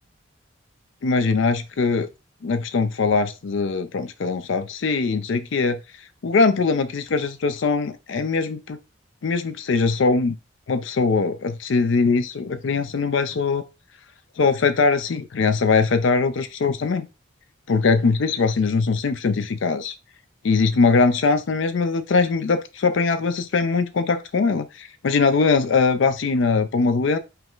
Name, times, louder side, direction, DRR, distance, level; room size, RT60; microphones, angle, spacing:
voice 1, 1.0-2.1 2.4-5.8 6.2-8.8 9.2-10.4 10.7-13.6 14.4-17.1 17.7-19.9 20.4-27.2, left 4 dB, 70° left, 0.4 m, -21 dB
5.5 x 2.5 x 3.6 m
head